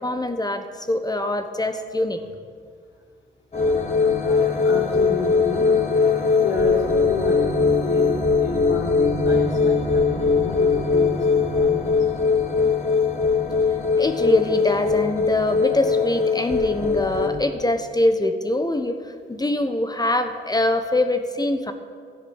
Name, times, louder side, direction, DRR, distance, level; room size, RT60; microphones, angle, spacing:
voice 1, 0.0-2.2 14.0-21.7, left 1 dB, 20° left, 8 dB, 1.2 m, -23 dB
sound 1, 3.5-17.3, left 5 dB, 35° left, 3.4 m, -21 dB
voice 2, 4.2-11.9, left 2 dB, 70° left, -7 dB, 3.9 m, -30 dB
13.0 x 10.0 x 7.2 m, 2.1 s
supercardioid pair, 60°, 20 cm